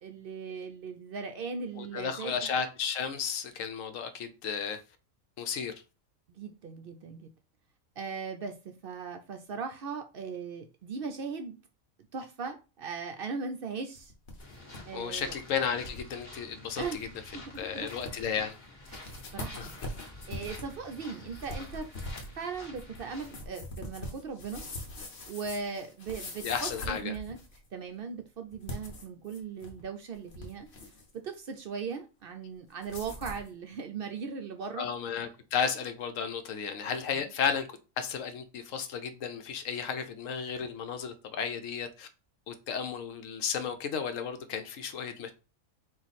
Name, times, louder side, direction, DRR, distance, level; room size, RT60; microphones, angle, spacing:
voice 1, 0.0-2.5 6.3-7.3 8.0-11.6 12.1-14.1 14.9-15.3 16.8-17.0 17.3-17.9 18.9-19.7 20.3-21.9 22.4-24.6 25.3-27.4 27.7-30.7 31.1-34.9 37.1-37.2, right 5 dB, 60° right, 0.6 m, -38 dB
voice 2, 1.8-4.8 5.4-5.7 14.9-17.1 17.5-18.5 19.6-19.7 26.4-27.1 34.8-42.1 42.5-45.3, left 7 dB, 75° left, 1.0 m, -33 dB
sound 1, 14.0-14.8 15.1-15.2 15.8-16.0 16.4-16.5 16.7-17.0 17.5-17.6 17.9-18.4 18.8-27.7 28.5-29.8 30.1-31.1 32.8-33.5, left 1 dB, 55° left, 1.2 m, -42 dB
sound 2, 14.4-23.4, left 2 dB, 35° left, 1.3 m, -49 dB
4.5 x 2.4 x 4.0 m
omnidirectional pair, 1.4 m